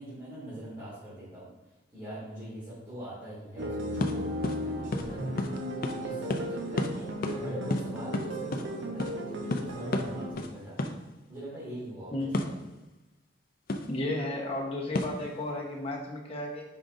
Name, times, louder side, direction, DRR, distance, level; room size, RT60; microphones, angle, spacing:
voice 1, 0.0-4.3 4.6-5.5 5.9-10.9 11.3-12.5, right 1 dB, 20° right, -12 dB, 2.3 m, -42 dB
arpeggiator e-music fragment, 3.6-10.3, equal, 85° right, 1.0 m, -35 dB
sound 1, 4.0-4.1 4.4-4.6 4.9-5.1 5.4-5.6 5.8-6.0 6.3-6.4 6.8-6.9 7.2-7.4 7.7-8.6 9.0-9.1 9.5-9.7 9.9-10.1 10.4-10.5 10.8-10.9 12.3-12.6 13.7-13.9 14.9-15.2, left 2 dB, 50° left, 0.5 m, -30 dB
voice 2, 13.9-16.6, left 1 dB, 30° left, -1 dB, 1.1 m, -33 dB
8.9 x 5.0 x 2.6 m, 1.0 s
head